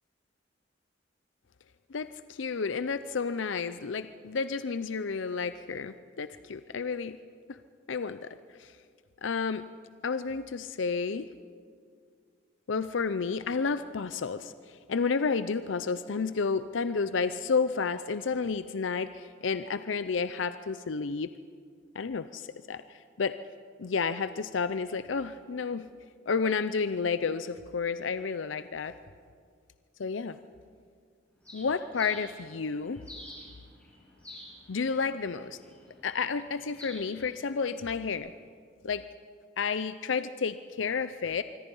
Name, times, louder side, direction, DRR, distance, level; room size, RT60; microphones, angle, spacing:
voice 1, 1.9-7.2 7.9-8.7 9.2-9.7 10.0-11.3 12.7-21.3 21.9-23.3 23.8-25.9 26.3-28.9 30.0-30.4 31.5-33.0 34.7-35.6 36.0-38.3 38.8-39.0 39.6-41.4, left 5 dB, 85° left, 12 dB, 0.6 m, -31 dB
Bird, 31.4-38.1, left 1 dB, 5° left, 7.0 m, -50 dB
25.5 x 24.0 x 5.5 m, 2.1 s
head